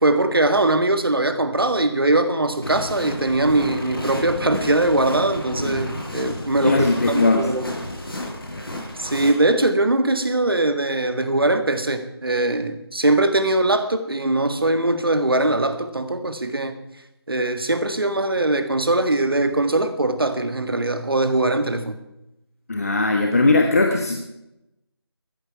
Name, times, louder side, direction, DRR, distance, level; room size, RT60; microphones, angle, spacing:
voice 1, 0.0-7.7 9.0-16.8 17.3-22.0, right 2 dB, 60° right, 9 dB, 1.8 m, -21 dB
sound 1, 2.6-9.3, left 1 dB, 60° left, 5.8 m, -31 dB
voice 2, 6.6-7.5 22.7-24.2, left 3 dB, 35° left, 3 dB, 1.2 m, -19 dB
15.0 x 14.0 x 4.7 m, 0.88 s
figure-of-eight pair, 165°, 14 cm